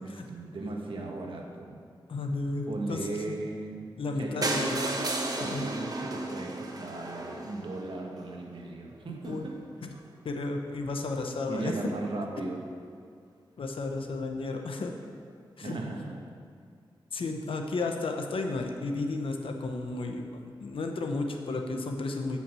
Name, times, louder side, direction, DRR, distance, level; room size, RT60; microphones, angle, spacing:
voice 1, 0.0-1.8 2.7-3.9 4.1-9.6 11.5-12.6 15.6-16.2, right 2 dB, 75° right, 0 dB, 1.3 m, -37 dB
voice 2, 2.1-3.4 4.0-4.8 5.4-5.7 9.3-9.5 9.8-9.9 10.2-11.9 13.6-14.9 15.6-15.7 17.1-22.4, left 3 dB, 85° left, 3 dB, 0.9 m, -33 dB
sound 1, 4.4-8.3 8.9-9.0 9.3-9.4 9.7-9.8 9.9-10.0, right 2 dB, 45° right, 1.1 m, -33 dB
8.8 x 5.7 x 6.2 m, 2.2 s
wide cardioid pair, 65°, 9 cm